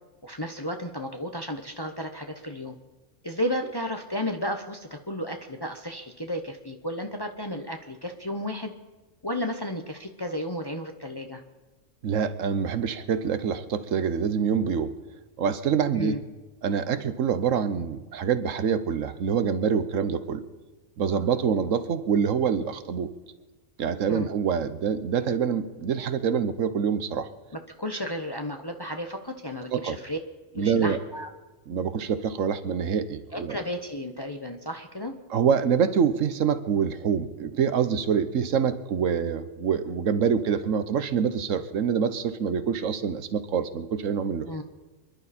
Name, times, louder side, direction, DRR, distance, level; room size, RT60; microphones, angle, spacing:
voice 1, 0.2-2.7 3.2-8.7 9.2-11.4 15.9-16.2 24.1-24.3 27.8-30.2 30.5-31.3 33.3-35.1 44.5-44.6, equal, 20° left, 5 dB, 0.8 m, -33 dB
voice 2, 12.0-14.9 15.4-16.1 16.6-20.4 21.0-23.1 23.8-27.3 29.7-30.0 30.6-31.0 31.7-33.6 35.3-44.5, right 7 dB, 85° right, 12 dB, 1.3 m, -26 dB
26.5 x 11.5 x 4.2 m, 1.2 s
omnidirectional pair, 1.3 m